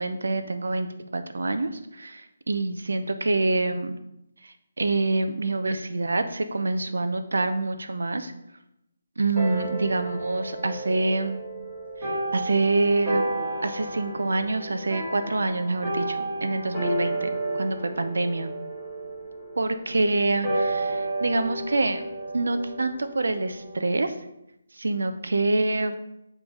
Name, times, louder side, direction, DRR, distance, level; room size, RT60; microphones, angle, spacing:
voice 1, 0.0-4.0 4.4-8.3 9.2-11.4 12.0-13.3 13.6-18.5 19.6-22.0 22.3-24.2 24.7-25.9, right 2 dB, 90° right, 9 dB, 0.6 m, -26 dB
sound 1, 9.4-24.1, right 2 dB, 15° right, 1.7 m, -32 dB
7.4 x 3.3 x 4.7 m, 0.85 s
hypercardioid pair, 175°, 0 cm